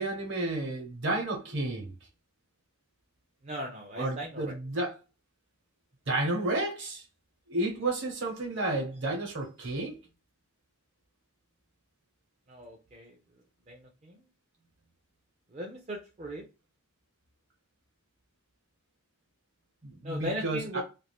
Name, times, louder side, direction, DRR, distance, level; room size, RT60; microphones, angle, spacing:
voice 1, 0.0-1.9 4.0-5.0 6.1-7.0 7.5-10.0 19.8-20.8, right 2 dB, 55° right, 1.0 m, -31 dB
voice 2, 3.4-4.5 12.5-13.2 13.7-14.2 15.5-16.4 20.0-20.8, equal, 30° right, 0.4 m, -38 dB
2.5 x 2.4 x 3.3 m
head